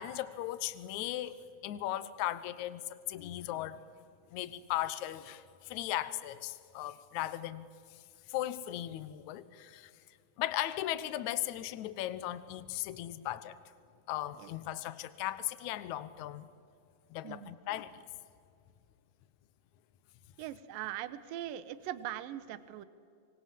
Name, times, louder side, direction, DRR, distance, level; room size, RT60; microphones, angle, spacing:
voice 1, 0.0-3.8 4.3-7.7 8.3-9.9 10.4-13.6 14.1-16.5 17.1-18.0, left 13 dB, 70° left, 15 dB, 1.9 m, -37 dB
voice 2, 17.2-17.5 20.4-22.9, right 12 dB, 75° right, 14 dB, 2.5 m, -41 dB
26.5 x 23.0 x 7.4 m, 2.4 s
omnidirectional pair, 4.3 m